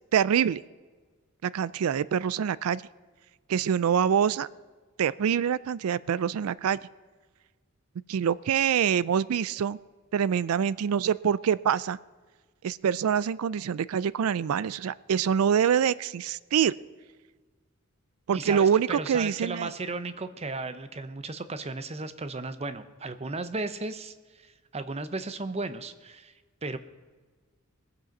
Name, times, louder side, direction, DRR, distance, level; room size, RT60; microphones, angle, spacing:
voice 1, 0.1-0.6 1.4-2.8 3.5-4.5 5.0-6.8 8.1-9.8 10.1-12.0 12.6-16.7 18.3-19.7, right 8 dB, 85° right, 20 dB, 0.4 m, -25 dB
voice 2, 18.3-26.3 26.6-26.8, right 3 dB, 30° right, 11 dB, 0.7 m, -35 dB
21.0 x 7.7 x 5.3 m, 1.4 s
head